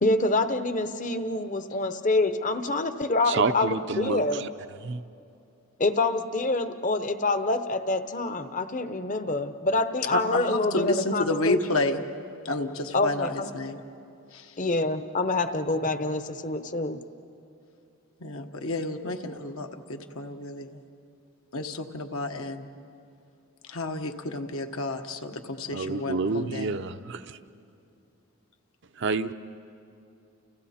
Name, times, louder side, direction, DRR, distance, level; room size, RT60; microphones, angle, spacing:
voice 1, 0.0-4.4 5.8-11.6 12.9-13.5 14.6-17.0, left 2 dB, 35° left, 9 dB, 0.9 m, -26 dB
voice 2, 3.3-4.5 4.8-5.0 25.7-27.4 28.9-29.3, right 4 dB, 50° right, 9 dB, 0.6 m, -29 dB
voice 3, 10.1-12.0 12.4-13.8 14.3-14.6 18.2-20.8 21.5-22.7 23.7-26.7, left 2 dB, 70° left, 5 dB, 1.3 m, -30 dB
30.0 x 29.5 x 4.3 m, 2.7 s
head